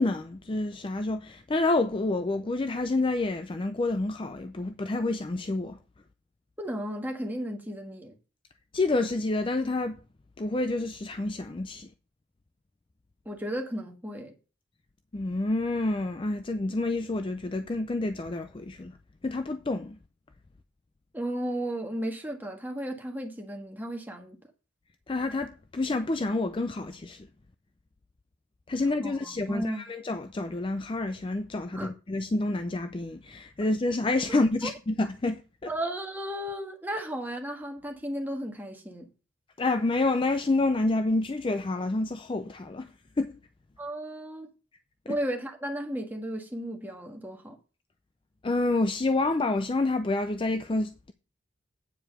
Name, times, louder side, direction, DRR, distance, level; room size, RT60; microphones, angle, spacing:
voice 1, 0.0-5.8 8.7-10.0 10.4-11.9 15.1-18.9 19.2-20.0 25.1-27.3 28.7-35.7 39.6-42.9 43.2-43.3 45.1-45.2 48.4-51.1, left 2 dB, 25° left, 0.4 m, -28 dB
voice 2, 6.6-8.1 13.2-14.3 21.1-24.4 29.0-29.9 31.7-31.9 34.3-34.7 35.7-39.1 43.8-44.5 45.1-47.6, right 1 dB, 10° right, 1.5 m, -34 dB
9.1 x 4.8 x 6.5 m
head